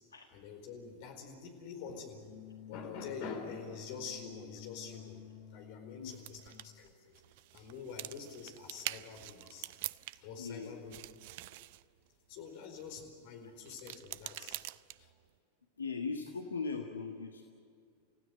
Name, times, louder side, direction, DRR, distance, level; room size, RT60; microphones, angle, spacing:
voice 1, 0.3-2.3 2.7-5.2 5.5-7.2 7.5-9.7 10.2-11.0 12.3-14.6 15.0-15.1, left 5 dB, 45° left, 4 dB, 4.5 m, -46 dB
sound 1, 2.1-6.8, left 9 dB, 30° left, 2.3 m, -52 dB
sound 2, 6.1-10.5 10.7-13.0 13.6-15.3, right 17 dB, 50° right, 0.5 m, -46 dB
voice 2, 10.4-10.8 15.8-17.5, left 4 dB, 75° left, 3 dB, 1.5 m, -39 dB
29.5 x 16.0 x 7.7 m, 2.4 s
figure-of-eight pair, 90°, 0 cm